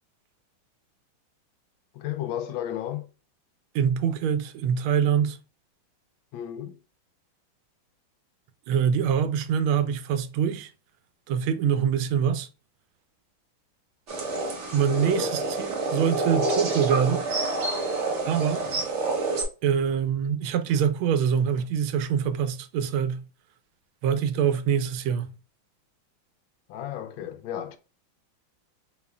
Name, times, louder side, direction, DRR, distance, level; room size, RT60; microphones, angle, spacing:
voice 1, 1.9-3.1 6.3-6.8 14.9-15.4 26.7-27.8, left 11 dB, 80° left, 1.3 m, -33 dB
voice 2, 3.7-5.4 8.7-10.7 11.3-12.5 14.7-17.2 18.3-18.7 19.6-23.2 24.0-25.3, right 8 dB, 90° right, 1.4 m, -24 dB
sound 1, 14.1-19.4, right 3 dB, 50° right, 1.0 m, -28 dB
4.0 x 3.8 x 2.3 m
omnidirectional pair, 2.2 m